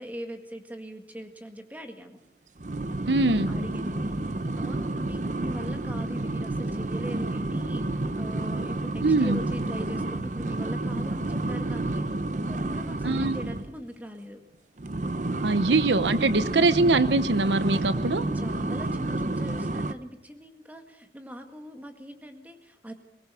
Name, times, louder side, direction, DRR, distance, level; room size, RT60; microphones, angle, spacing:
voice 1, 0.0-2.2 3.5-14.4 18.3-22.9, equal, 10° right, 5 dB, 1.9 m, -41 dB
sound 1, 2.6-13.7 14.8-19.9, right 2 dB, 45° right, 0.8 m, -30 dB
voice 2, 3.1-3.5 9.0-9.4 13.0-13.4 15.4-18.2, right 3 dB, 90° right, 13 dB, 0.9 m, -23 dB
22.5 x 19.0 x 7.0 m, 0.86 s
head